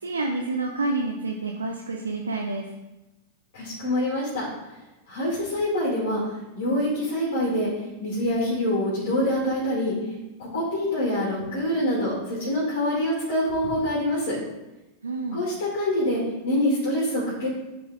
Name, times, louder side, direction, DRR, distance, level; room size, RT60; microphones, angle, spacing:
voice 1, 0.0-2.7 15.0-15.4, right 3 dB, 75° right, 1 dB, 0.7 m, -28 dB
voice 2, 3.5-4.4 5.1-6.2 6.5-7.7 8.0-9.9 10.4-14.4 15.3-17.5, left 1 dB, 55° left, -8 dB, 2.6 m, -25 dB
9.5 x 4.2 x 3.9 m, 1.0 s
figure-of-eight pair, 90°, 0 cm